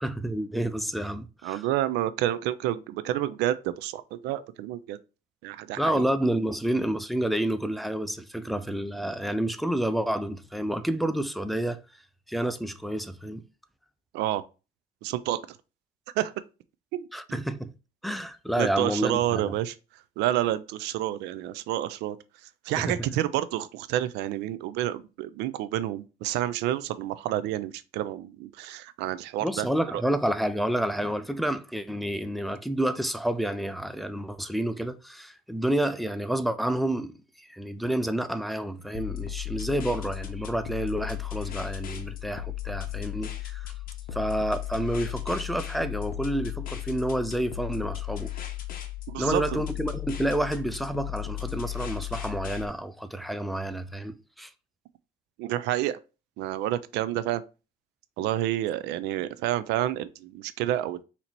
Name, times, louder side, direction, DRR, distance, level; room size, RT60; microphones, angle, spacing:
voice 1, 0.0-1.6 5.8-11.8 12.3-13.4 17.1-17.7 18.0-19.5 22.8-23.0 29.4-37.1 37.4-43.7 44.1-48.3 49.2-54.5, right 1 dB, ahead, 0.4 m, -29 dB
voice 2, 1.4-5.0 5.4-6.1 14.1-14.4 15.0-15.4 16.2-16.3 16.9-17.1 18.6-19.7 20.2-22.2 22.6-29.7 29.9-30.0 49.1-49.6 55.4-56.0 56.4-57.4 58.2-61.0, right 13 dB, 90° right, 0.4 m, -29 dB
sound 1, 38.9-52.7, left 14 dB, 55° left, 0.8 m, -35 dB
4.0 x 2.9 x 4.4 m
cardioid pair, 110°, 17 cm